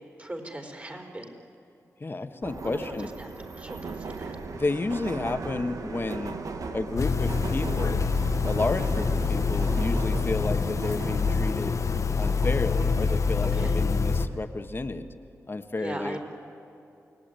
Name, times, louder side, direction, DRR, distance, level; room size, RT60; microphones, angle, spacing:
voice 1, 0.2-1.4 2.6-2.7 3.2-3.3 3.5-4.4 13.4-13.8 15.8-16.2, right 1 dB, 25° right, 3 dB, 4.2 m, -38 dB
voice 2, 2.0-3.1 4.5-6.3 6.7-8.0 8.4-11.8 12.2-15.1 15.5-16.2, left 3 dB, 40° left, 8 dB, 1.5 m, -31 dB
Subway metro underground, 2.4-14.4, right 4 dB, 75° right, 1.5 m, -37 dB
sound 1, 7.0-14.3, left 4 dB, 65° left, 1.1 m, -26 dB
29.0 x 18.5 x 9.2 m, 2.8 s
cardioid pair, 50°, 6 cm